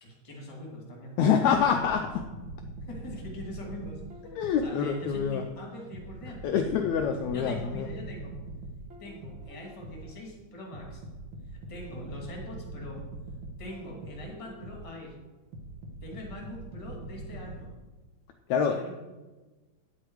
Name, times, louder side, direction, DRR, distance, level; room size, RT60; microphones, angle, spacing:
voice 1, 0.0-1.2 2.8-4.0 4.6-6.4 7.3-8.4 9.0-11.0 11.5-13.0 13.6-15.1 16.0-17.7 18.6-18.9, left 1 dB, 10° left, -1 dB, 1.7 m, -43 dB
voice 2, 1.2-2.3 4.3-5.4 6.4-7.9 18.5-18.8, left 7 dB, 75° left, 5 dB, 1.8 m, -26 dB
sound 1, 1.4-5.4 5.9-10.2 10.7-15.0 15.5-17.6, right 2 dB, 55° right, 1.6 m, -43 dB
9.8 x 8.4 x 4.7 m, 1.2 s
omnidirectional pair, 3.8 m